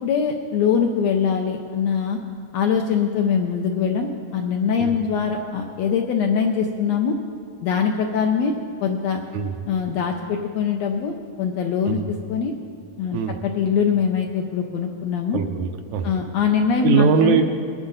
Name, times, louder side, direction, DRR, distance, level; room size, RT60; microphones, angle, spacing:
voice 1, 0.0-2.2 2.5-7.2 7.6-8.5 8.8-9.2 9.7-12.0 12.3-12.5 13.0-15.4 16.0-17.4, left 6 dB, 75° left, 3 dB, 1.6 m, -22 dB
voice 2, 15.3-16.1 16.8-17.4, right 6 dB, 75° right, 6 dB, 1.9 m, -21 dB
21.0 x 9.7 x 4.0 m, 2.3 s
omnidirectional pair, 3.7 m